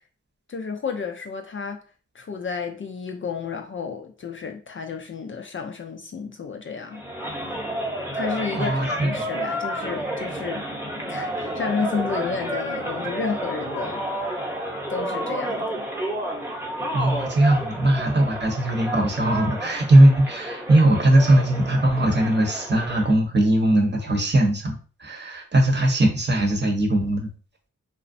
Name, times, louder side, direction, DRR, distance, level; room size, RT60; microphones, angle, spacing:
voice 1, 0.5-1.8 2.1-7.0 8.1-10.6 11.1-14.0 14.9-15.9, left 5 dB, 40° left, 0.4 m, -31 dB
sound 1, 6.9-23.1, right 1 dB, 5° right, 0.8 m, -31 dB
voice 2, 8.5-9.2 16.9-27.3, right 1 dB, 35° right, 0.8 m, -19 dB
2.4 x 2.0 x 2.5 m
cardioid pair, 45°, 32 cm